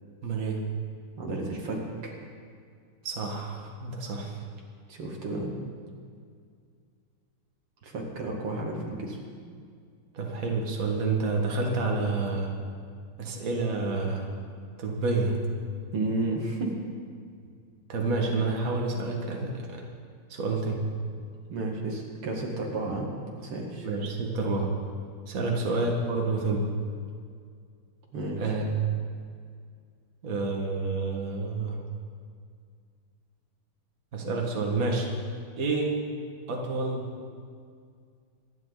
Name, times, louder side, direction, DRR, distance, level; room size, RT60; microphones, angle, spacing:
voice 1, 0.2-0.6 3.0-4.4 10.1-12.5 13.2-14.3 14.8-15.4 17.9-19.8 20.3-20.8 23.8-24.7 25.3-26.7 28.4-28.9 30.2-31.8 34.1-35.1 35.6-35.9 36.5-37.1, right 3 dB, 40° right, -1 dB, 2.1 m, -29 dB
voice 2, 1.2-2.1 4.9-5.5 7.8-9.2 15.9-16.7 21.5-23.9 25.4-25.6 28.1-28.4, right 2 dB, 85° right, -1 dB, 3.0 m, -32 dB
25.0 x 10.5 x 4.0 m, 2.2 s
omnidirectional pair, 2.4 m